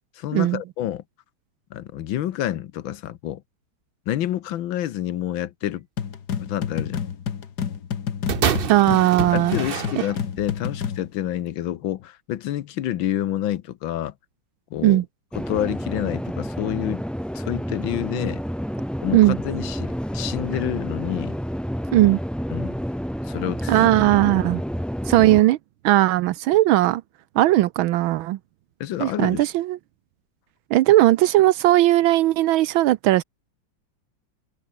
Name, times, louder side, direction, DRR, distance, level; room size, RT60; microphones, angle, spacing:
voice 1, 0.1-1.0 1.7-3.4 4.1-5.9 6.4-7.0 9.3-14.1 14.7-15.0 15.3-17.0 17.3-18.4 19.0-21.4 22.5-22.8 23.2-23.9 25.2-25.3 28.8-29.4, left 12 dB, 80° left, 1.7 m, -28 dB
sound 1, 6.0-11.1, left 7 dB, 55° left, 2.0 m, -29 dB
sound 2, 8.3-10.5 11.3-11.4, right 7 dB, 50° right, 0.7 m, -27 dB
voice 2, 8.7-9.6 14.8-15.0 19.1-19.4 21.9-22.2 23.7-24.6 25.1-25.6 25.8-27.0 27.3-28.4 29.0-29.8 30.7-33.2, right 15 dB, 85° right, 1.5 m, -18 dB
sound 3, 15.3-25.4, equal, ahead, 1.9 m, -29 dB
omnidirectional pair, 2.2 m